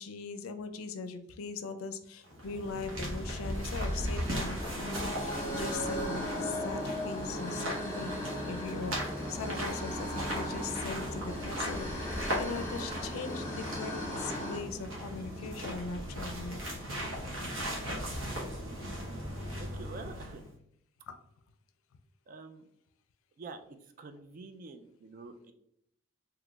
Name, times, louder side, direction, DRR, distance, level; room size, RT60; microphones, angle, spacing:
voice 1, 0.0-8.1 8.5-9.0 9.3-11.9 12.3-16.6 21.1-21.2, left 4 dB, 85° left, 9 dB, 0.4 m, -40 dB
sound 1, 2.2-20.5, equal, 70° right, 1.0 m, -38 dB
sound 2, 3.3-14.6, left 1 dB, 15° left, 1.0 m, -39 dB
sound 3, 4.8-9.7, right 1 dB, 35° left, 0.5 m, -40 dB
voice 2, 17.9-18.5 19.5-20.4 22.3-22.7 23.4-25.5, right 3 dB, 40° right, 7 dB, 0.3 m, -47 dB
3.8 x 2.8 x 2.3 m, 0.74 s
head